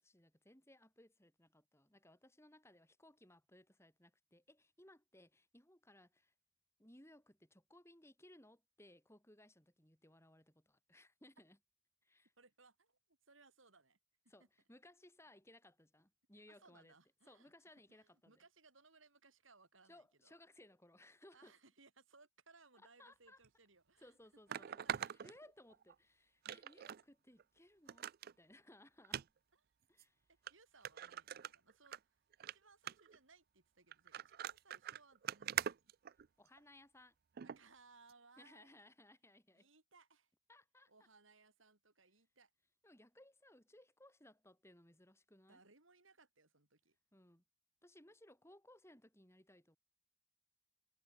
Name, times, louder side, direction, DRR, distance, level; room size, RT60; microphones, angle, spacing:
voice 1, 0.0-6.3 6.8-11.6 12.0-12.3 14.3-16.9 17.2-18.4 19.9-21.5 23.0-23.4 24.0-28.1 28.4-29.3 29.9-30.3 36.4-37.1 38.4-39.7 40.5-40.9 42.8-45.6 47.1-47.4 47.8-49.8, left 1 dB, 15° left, 6.8 m, -63 dB
voice 2, 12.4-14.0 14.2-14.5 16.5-20.4 21.3-24.2 24.8-25.1 29.5-29.8 30.3-32.2 32.5-35.9 37.4-38.9 39.5-40.3 40.9-42.5 45.5-47.0, right 4 dB, 80° right, 6.5 m, -67 dB
sound 1, 23.4-23.5 24.5-25.9 26.4-27.0 27.4-27.5 27.9-28.3 29.0-29.2 30.0-30.1 30.5-30.6 30.8-32.0 32.3-32.5 32.9-33.2 33.9-36.6 37.4-37.6 38.1-38.2, right 10 dB, 50° right, 0.4 m, -43 dB
head